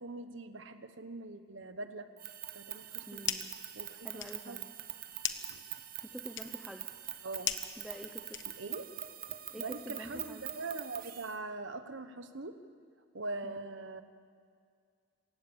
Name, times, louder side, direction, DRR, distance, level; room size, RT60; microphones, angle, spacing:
voice 1, 0.0-2.1 2.5-3.2 3.7-4.7 5.5-5.6 7.2-7.5 8.5-8.9 9.3-12.6 13.1-14.0, right 3 dB, 70° right, 10 dB, 1.2 m, -42 dB
sound 1, 2.2-11.3, right 12 dB, 45° right, 1.0 m, -44 dB
sound 2, 2.8-3.6 4.0-8.9, left 10 dB, 65° left, 1.1 m, -40 dB
voice 2, 3.1-3.5 4.0-4.7 6.0-6.9 7.8-8.4 9.5-10.4 13.4-13.7, equal, ahead, 4 dB, 0.8 m, -47 dB
27.0 x 16.0 x 7.3 m, 2.2 s
head